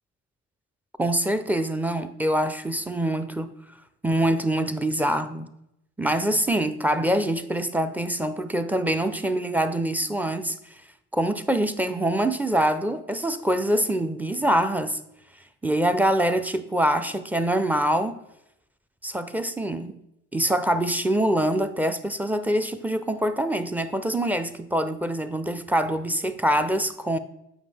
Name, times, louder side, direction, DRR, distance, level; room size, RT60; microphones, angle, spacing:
voice 1, 1.0-3.5 4.0-5.5 6.0-10.6 11.1-15.0 15.6-18.2 19.0-20.0 20.3-27.2, right 1 dB, 5° right, 9 dB, 0.4 m, -24 dB
7.2 x 5.3 x 3.3 m, 0.83 s
cardioid pair, 90°, 30 cm